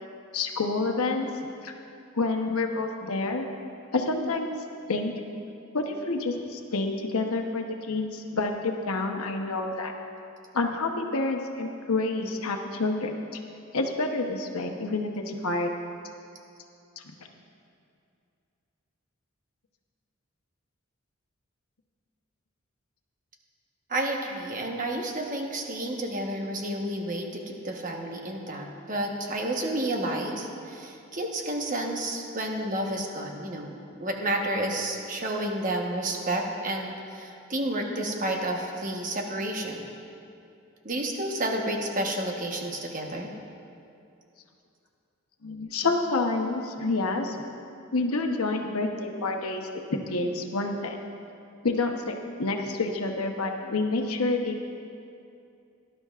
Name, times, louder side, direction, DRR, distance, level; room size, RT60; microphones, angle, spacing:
voice 1, 0.3-1.3 1.6-1.7 2.1-3.4 3.9-4.6 4.9-5.1 5.7-9.9 10.5-13.4 13.7-15.7 45.4-47.4 47.9-51.0 51.6-54.6, left 3 dB, 90° left, 3 dB, 1.0 m, -28 dB
voice 2, 23.9-39.9 40.8-43.3, right 1 dB, 35° right, 1 dB, 1.2 m, -30 dB
18.5 x 11.5 x 2.5 m, 2.6 s
head